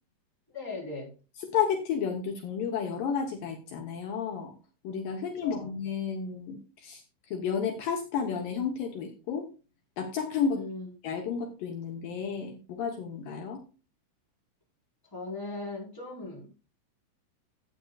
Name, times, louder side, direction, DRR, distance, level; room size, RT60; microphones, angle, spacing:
voice 1, 0.5-1.1 5.2-5.7 10.5-10.9 15.0-16.5, left 3 dB, 5° left, -5 dB, 3.8 m, -38 dB
voice 2, 1.4-4.6 4.8-9.5 10.0-10.6 11.0-13.6, left 6 dB, 85° left, 2 dB, 1.9 m, -32 dB
15.0 x 8.6 x 2.4 m, 0.33 s
omnidirectional pair, 5.7 m